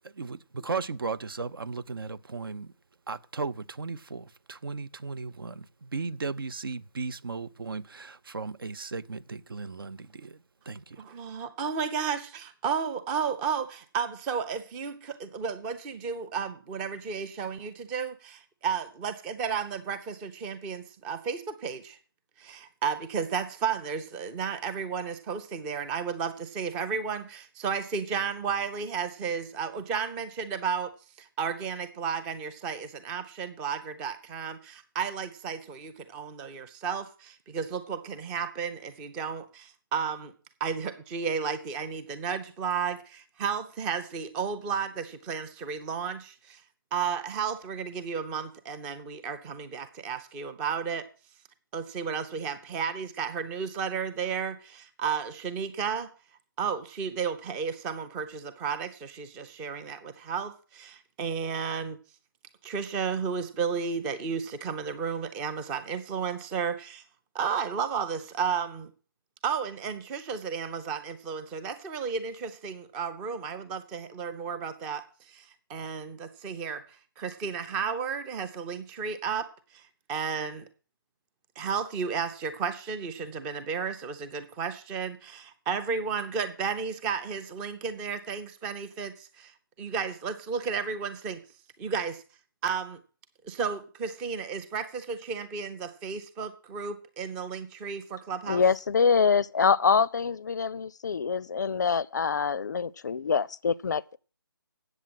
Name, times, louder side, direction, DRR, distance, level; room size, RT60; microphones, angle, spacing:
voice 1, 0.2-2.7 3.1-10.4 10.7-11.0, right 4 dB, 70° right, 0.7 m, -36 dB
voice 2, 11.0-22.0 22.4-40.3 40.6-46.6 46.9-51.1 51.7-56.1 56.6-62.0 62.6-67.0 67.3-68.9 69.4-79.5 79.7-80.7 81.6-89.5 89.8-91.4 91.8-92.2 92.6-93.0 93.4-98.6, right 6 dB, 10° right, 0.5 m, -33 dB
voice 3, 98.5-104.0, left 6 dB, 50° left, 0.4 m, -25 dB
8.0 x 7.3 x 7.6 m
figure-of-eight pair, 160°, 12 cm